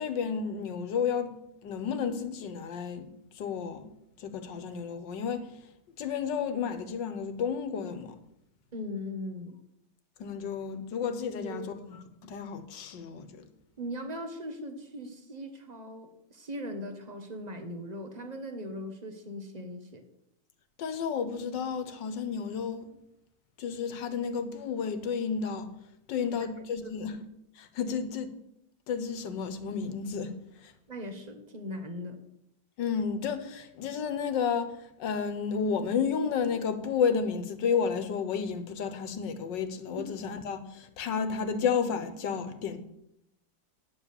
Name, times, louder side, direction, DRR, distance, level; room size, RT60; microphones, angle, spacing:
voice 1, 0.0-1.3 1.6-3.1 3.3-3.9 4.2-5.5 6.0-8.2 10.2-13.5 20.8-23.0 23.6-25.7 26.1-27.2 27.6-28.3 28.9-30.3 30.6-30.7 32.8-42.8, left 6 dB, 85° left, 1.7 m, -32 dB
voice 2, 8.7-9.6 11.3-11.7 13.8-20.0 26.2-26.3 26.8-26.9 27.8-28.0 30.9-32.2 40.0-40.1, equal, 25° right, 1.3 m, -39 dB
9.5 x 7.3 x 7.0 m
omnidirectional pair, 1.9 m